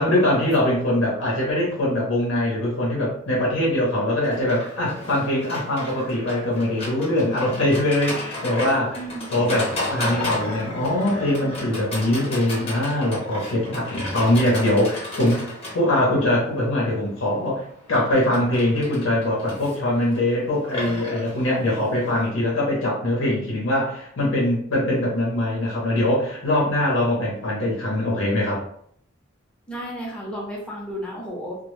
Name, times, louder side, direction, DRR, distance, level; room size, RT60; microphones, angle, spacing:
voice 1, 0.0-9.0 9.3-17.6 17.9-28.6, left 1 dB, 80° left, -4 dB, 0.7 m, -22 dB
Livestock farm animals working animals, 4.2-22.3, left 1 dB, 30° left, 0.8 m, -34 dB
voice 2, 8.9-9.7 29.7-31.6, equal, 5° left, -4 dB, 0.5 m, -33 dB
2.0 x 2.0 x 3.0 m, 0.65 s
head